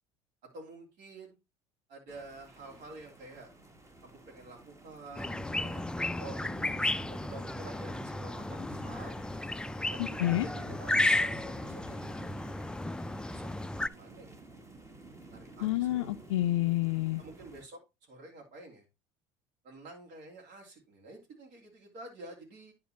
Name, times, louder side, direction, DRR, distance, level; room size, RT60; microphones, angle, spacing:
voice 1, 0.5-1.4 1.9-3.5 4.0-6.4 7.0-9.2 9.9-12.6 13.3-14.4 15.3-16.1 17.2-18.8 19.6-22.7, right 2 dB, 55° right, 2.8 m, -49 dB
sound 1, 2.1-17.7, right 2 dB, 20° right, 1.5 m, -51 dB
sound 2, 5.2-13.9, left 2 dB, 5° left, 0.3 m, -33 dB
voice 2, 10.0-10.5 15.6-17.2, left 15 dB, 80° left, 0.4 m, -29 dB
10.5 x 3.8 x 4.3 m
hypercardioid pair, 70°, 15 cm